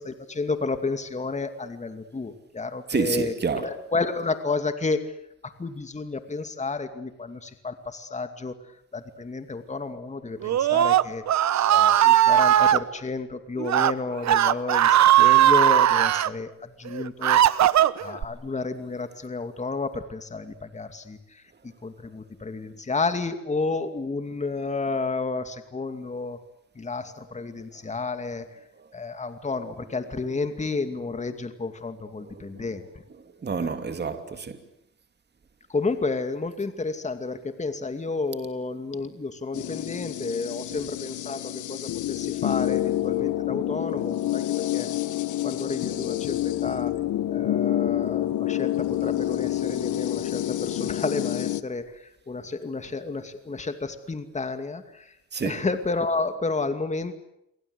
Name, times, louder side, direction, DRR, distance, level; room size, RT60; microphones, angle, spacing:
voice 1, 0.0-3.3 3.6-5.0 5.4-8.5 8.9-11.2 11.7-14.9 15.2-17.4 18.0-21.4 21.8-26.4 26.8-28.5 28.9-32.8 33.6-33.7 35.7-44.9 45.4-46.9 47.3-55.1 55.4-57.1, left 3 dB, 25° left, 2.4 m, -31 dB
voice 2, 2.9-3.8 28.8-28.9 29.9-30.0 30.3-30.8 32.2-32.8 33.1-34.6 40.7-40.9 55.3-55.7, right 5 dB, 35° right, 2.9 m, -31 dB
Screaming, 10.4-12.8 13.6-13.9 14.2-16.3 16.9-18.2, right 12 dB, 65° right, 1.2 m, -18 dB
sound 1, 39.5-51.6, left 13 dB, 75° left, 1.4 m, -28 dB
29.5 x 23.5 x 8.2 m
cardioid pair, 90°, 30 cm